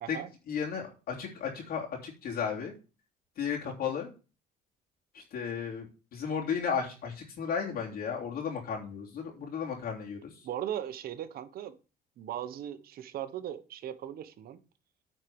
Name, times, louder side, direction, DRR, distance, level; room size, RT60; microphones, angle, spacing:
voice 1, 0.5-2.7 3.4-4.1 5.1-10.5, left 7 dB, 65° left, -1 dB, 3.2 m, -34 dB
voice 2, 10.4-11.8 12.2-14.6, right 11 dB, 60° right, 11 dB, 1.1 m, -38 dB
9.1 x 4.5 x 7.0 m, 0.32 s
cardioid pair, 110°, 17 cm